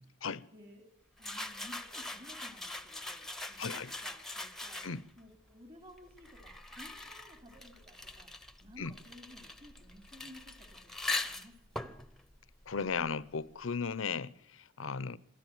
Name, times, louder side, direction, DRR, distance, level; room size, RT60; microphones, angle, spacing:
voice 1, 0.5-0.9 1.2-4.8 5.2-11.9, equal, 30° right, 3.1 m, -56 dB
sound 1, 1.2-5.2 6.0-13.4, left 2 dB, ahead, 1.0 m, -42 dB
voice 2, 3.6-3.9 4.8-5.0 8.8-8.9 12.7-15.2, left 5 dB, 75° left, 0.8 m, -36 dB
24.5 x 13.5 x 9.3 m
head